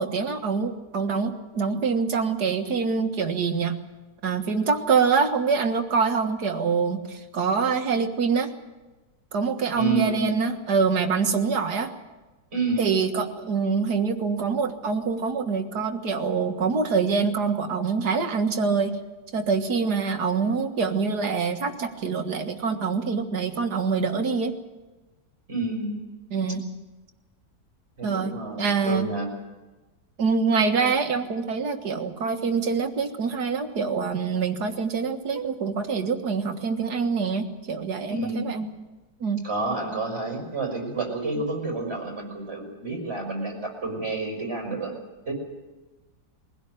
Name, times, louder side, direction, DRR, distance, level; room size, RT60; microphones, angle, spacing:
voice 1, 0.0-3.8 4.2-8.5 9.3-11.9 12.8-19.0 19.3-24.6 26.3-26.6 28.0-29.1 30.2-38.6 39.2-39.4, right 5 dB, 70° right, 6 dB, 2.1 m, -25 dB
voice 2, 9.8-10.5 12.5-12.8 25.5-26.0 28.0-29.3 38.1-38.6 39.4-44.9 45.3-45.4, right 3 dB, 40° right, 1 dB, 5.6 m, -29 dB
22.0 x 16.5 x 9.1 m, 1.2 s
omnidirectional pair, 1.8 m